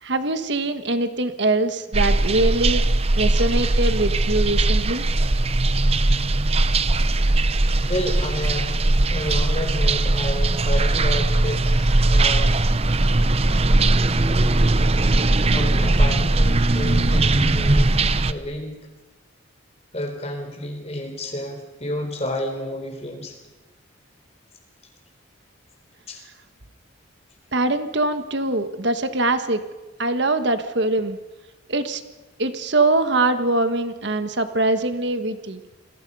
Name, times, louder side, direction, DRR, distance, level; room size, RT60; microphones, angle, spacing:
voice 1, 0.0-2.8 3.2-5.0 27.5-29.6 30.0-31.2 31.7-32.0 32.4-35.6, right 2 dB, 60° right, 9 dB, 1.5 m, -23 dB
sound 1, 1.9-18.3, right 2 dB, 30° right, 0.7 m, -19 dB
voice 2, 7.9-8.8 9.1-12.6 15.5-18.8 19.9-23.4 26.1-26.2, left 1 dB, 30° left, 5 dB, 3.8 m, -30 dB
29.5 x 22.0 x 5.5 m, 1.1 s
head